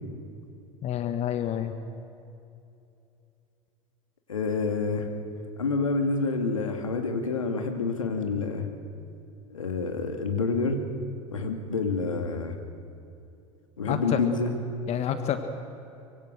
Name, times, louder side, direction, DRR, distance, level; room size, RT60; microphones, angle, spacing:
voice 1, 0.8-1.7 13.9-14.2 14.9-15.4, left 10 dB, 40° left, 8 dB, 1.5 m, -28 dB
voice 2, 4.3-5.1 5.6-8.7 9.5-10.8 11.3-12.6 13.8-14.5, left 4 dB, 85° left, 5 dB, 2.3 m, -28 dB
24.0 x 23.0 x 6.5 m, 2.7 s
figure-of-eight pair, 75°, 17 cm